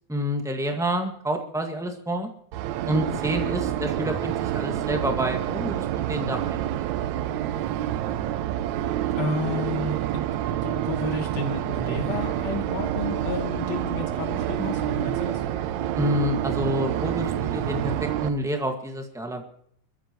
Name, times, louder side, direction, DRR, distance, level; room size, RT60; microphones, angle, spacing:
voice 1, 0.1-2.3 2.8-6.6 16.0-19.4, equal, 5° right, 3 dB, 0.5 m, -28 dB
sound 1, 2.5-18.3, right 12 dB, 75° right, 2.0 m, -28 dB
voice 2, 9.2-15.4, left 4 dB, 60° left, 2 dB, 3.7 m, -32 dB
27.0 x 14.0 x 3.1 m, 0.65 s
omnidirectional pair, 3.6 m